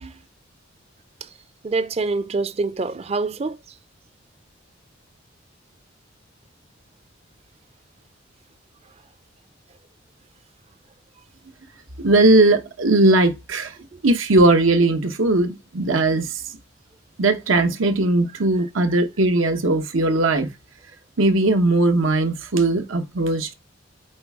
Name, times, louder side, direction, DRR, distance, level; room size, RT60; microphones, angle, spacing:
voice 1, 1.6-3.6 13.9-14.0, right 3 dB, 30° right, 0.4 m, -25 dB
voice 2, 12.0-13.7 14.0-16.4 17.2-20.5 21.2-23.5, right 2 dB, 90° right, 1.1 m, -18 dB
7.7 x 4.2 x 3.6 m
head